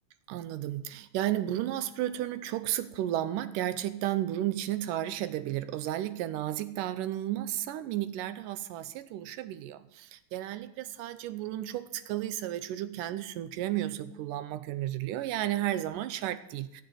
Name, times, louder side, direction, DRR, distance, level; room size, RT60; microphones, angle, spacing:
voice 1, 0.3-16.8, right 13 dB, 75° right, 12 dB, 2.2 m, -33 dB
16.0 x 6.5 x 9.5 m, 0.83 s
omnidirectional pair, 4.0 m